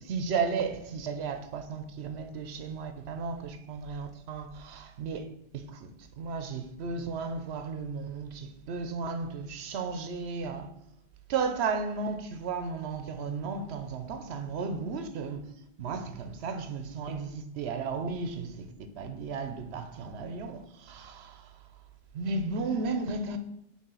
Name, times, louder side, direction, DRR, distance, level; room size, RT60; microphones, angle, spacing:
voice 1, 0.1-5.3 5.5-5.9 6.2-10.7 11.3-15.4 15.8-18.7 19.0-21.6 22.1-23.4, right 4 dB, 85° right, 0.9 m, -34 dB
5.5 x 3.2 x 5.4 m
omnidirectional pair, 1.1 m